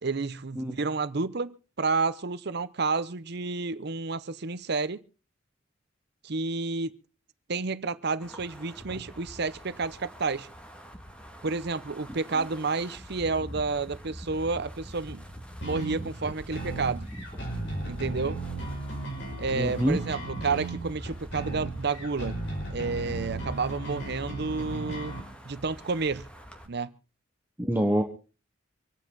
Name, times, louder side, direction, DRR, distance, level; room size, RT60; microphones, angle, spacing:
voice 1, 0.0-5.0 6.2-7.0 7.5-10.5 11.4-15.2 15.6-17.1 17.8-18.4 19.4-22.4 22.7-25.2 25.5-26.3 26.7-26.9, right 4 dB, 60° right, 0.8 m, -30 dB
Wind, 8.2-26.7, equal, 5° left, 2.1 m, -44 dB
sound 1, 15.6-25.2, right 2 dB, 65° left, 6.0 m, -36 dB
voice 2, 19.6-20.0 27.6-28.0, equal, 10° right, 1.2 m, -26 dB
26.0 x 9.1 x 3.9 m
head